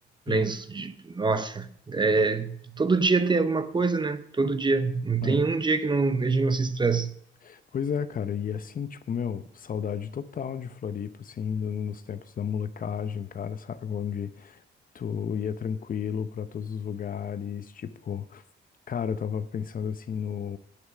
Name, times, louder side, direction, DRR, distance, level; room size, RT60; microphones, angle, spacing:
voice 1, 0.3-7.2, right 4 dB, 25° right, 0.8 m, -25 dB
voice 2, 7.4-14.6 14.9-18.4 18.9-20.6, left 7 dB, 45° left, 0.8 m, -32 dB
8.8 x 8.1 x 6.2 m
cardioid pair, 90°, 20 cm